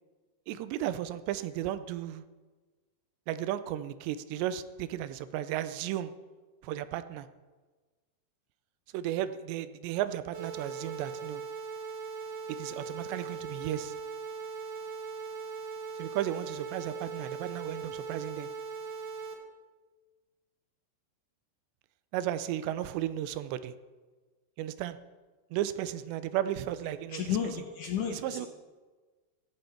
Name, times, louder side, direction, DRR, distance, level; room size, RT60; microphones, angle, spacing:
voice 1, 0.5-2.2 3.3-6.1 6.6-7.3 8.9-11.4 12.5-14.0 16.0-18.5 22.1-23.7 24.6-25.0 25.5-27.2 28.1-28.5, right 12 dB, 85° right, 13 dB, 2.9 m, -34 dB
sound 1, 10.3-19.3, right 5 dB, 45° right, 1.6 m, -40 dB
voice 2, 27.1-28.5, left 8 dB, 70° left, 3 dB, 1.9 m, -33 dB
15.5 x 15.5 x 4.5 m, 1.3 s
omnidirectional pair, 4.9 m